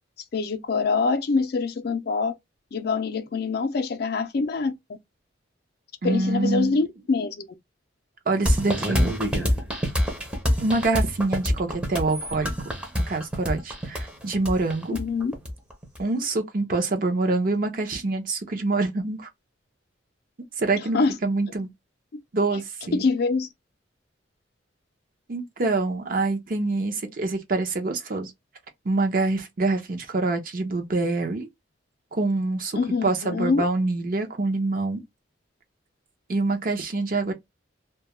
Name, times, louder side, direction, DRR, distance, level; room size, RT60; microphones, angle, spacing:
voice 1, 0.3-2.3 2.7-4.7 6.0-7.5 14.9-15.3 20.9-21.2 22.1-22.2 22.9-23.5 32.7-33.7, left 4 dB, 55° left, 0.4 m, -25 dB
voice 2, 6.0-6.7 8.3-9.1 10.6-12.5 13.1-15.0 16.0-19.3 20.6-21.7 22.3-23.1 25.3-28.3 28.8-31.5 32.1-35.0 36.3-37.3, right 3 dB, 50° right, 0.6 m, -25 dB
sound 1, 8.5-16.0, equal, 5° right, 0.6 m, -26 dB
2.2 x 2.1 x 2.9 m
head